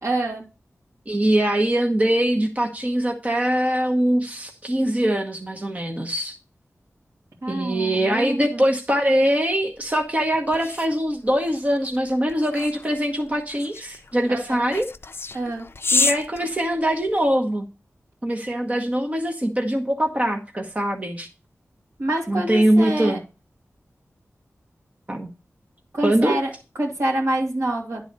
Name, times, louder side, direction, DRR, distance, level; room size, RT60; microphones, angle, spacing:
voice 1, 0.0-0.4 7.4-8.6 14.3-14.6 15.3-15.7 22.0-23.2 25.9-26.5 26.8-28.0, right 1 dB, 70° right, -1 dB, 2.7 m, -26 dB
voice 2, 1.1-6.4 7.5-14.9 15.9-17.6 18.2-21.3 22.3-23.2 25.1-25.3 26.0-26.4, right 1 dB, 30° right, 2 dB, 1.1 m, -22 dB
sound 1, 9.8-17.3, left 3 dB, 50° left, 0.5 m, -30 dB
10.5 x 4.0 x 6.6 m, 0.31 s
wide cardioid pair, 65°, 5 cm